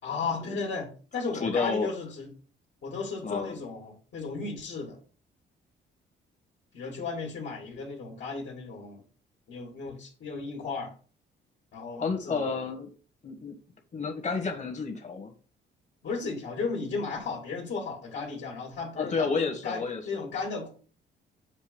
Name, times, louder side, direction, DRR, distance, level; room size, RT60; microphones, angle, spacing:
voice 1, 0.0-2.3 2.8-5.0 6.7-9.0 9.5-10.9 11.7-12.5 16.0-20.7, left 4 dB, 65° left, -1 dB, 2.1 m, -35 dB
voice 2, 1.3-1.9 3.2-3.5 12.0-12.9 13.2-13.6 13.9-15.3 19.0-20.2, left 4 dB, 35° left, 4 dB, 1.7 m, -30 dB
7.2 x 2.6 x 5.2 m, 0.38 s
cardioid pair, 90°, 20 cm